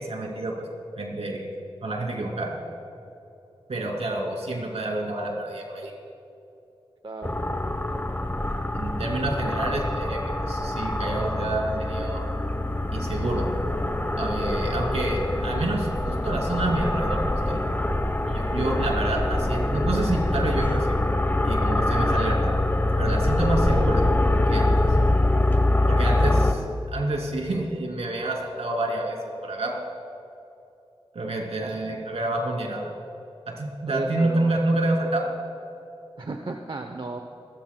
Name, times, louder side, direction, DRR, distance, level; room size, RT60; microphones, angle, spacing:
voice 1, 0.1-0.5 1.0-1.4 1.8-2.6 3.7-5.9 8.7-12.2 12.9-13.5 14.2-17.6 18.3-21.0 21.4-22.5 23.0-24.1 24.5-24.7 25.9-29.7 31.1-32.9 33.5-35.3, right 2 dB, 80° right, 0 dB, 2.9 m, -28 dB
voice 2, 7.0-7.4 9.5-9.7 31.6-32.0 33.9-34.5 36.2-37.2, right 3 dB, 50° right, 4 dB, 0.8 m, -35 dB
sound 1, 7.2-26.5, left 1 dB, 20° left, 1.1 m, -24 dB
27.5 x 13.5 x 2.3 m, 2.8 s
cardioid pair, 45°, 10 cm